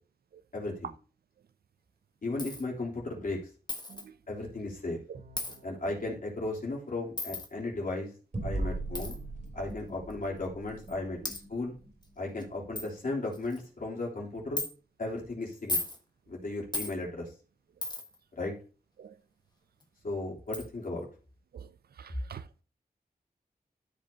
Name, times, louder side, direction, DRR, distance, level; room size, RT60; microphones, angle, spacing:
voice 1, 0.5-0.9 2.2-3.4 4.3-5.0 5.6-8.1 8.4-9.2 9.5-11.8 12.2-14.6 15.0-15.8 16.3-17.3 18.4-18.5 20.0-21.1, left 2 dB, 60° left, 3.3 m, -35 dB
Coin (dropping), 2.4-2.6 3.7-4.0 5.4-5.6 7.2-7.5 8.9-9.1 10.1-10.2 10.9-11.0 11.2-11.4 12.0-12.1 12.4-12.5 12.8-12.9 13.3-13.6 14.6-14.7 15.5-16.0 16.7-16.9 17.8-18.2 19.8-19.9 20.5-20.7, left 2 dB, 25° left, 1.4 m, -35 dB
Bowed string instrument, 5.1-6.0, right 2 dB, 65° right, 1.3 m, -54 dB
sound 1, 8.3-13.2, right 2 dB, 45° right, 2.8 m, -40 dB
voice 2, 21.5-22.5, right 7 dB, 80° right, 0.4 m, -46 dB
13.0 x 5.3 x 2.8 m
wide cardioid pair, 95°, 16 cm